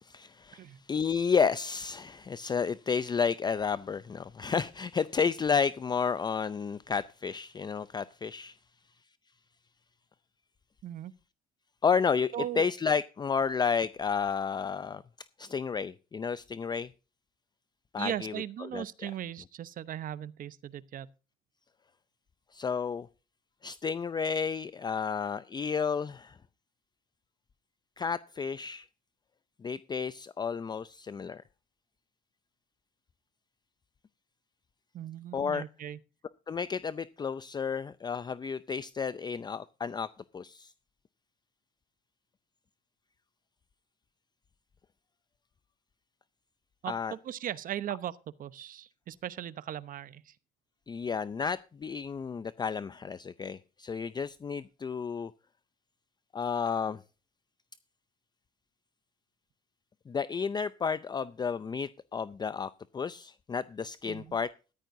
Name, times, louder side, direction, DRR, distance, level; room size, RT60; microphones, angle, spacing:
voice 1, 0.0-8.6 11.8-15.0 15.4-16.9 17.9-18.3 18.7-18.8 22.5-23.1 23.6-26.4 28.0-28.9 29.6-31.4 35.3-35.6 36.5-40.7 46.9-47.1 50.9-55.3 56.3-57.0 60.1-64.5, left 6 dB, 25° left, 0.5 m, -31 dB
voice 2, 10.8-11.1 12.3-12.7 18.0-21.1 34.9-36.0 46.8-50.4 64.0-64.4, right 11 dB, 55° right, 0.9 m, -38 dB
15.0 x 13.5 x 2.7 m
cardioid pair, 110°, 17 cm